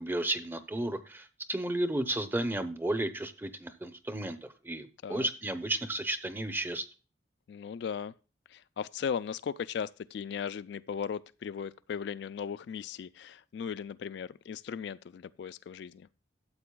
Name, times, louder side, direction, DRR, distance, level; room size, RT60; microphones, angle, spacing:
voice 1, 0.0-6.8, right 1 dB, 10° right, 0.6 m, -33 dB
voice 2, 7.5-8.1 8.5-16.1, left 7 dB, 65° left, 0.3 m, -37 dB
13.0 x 7.7 x 2.2 m
head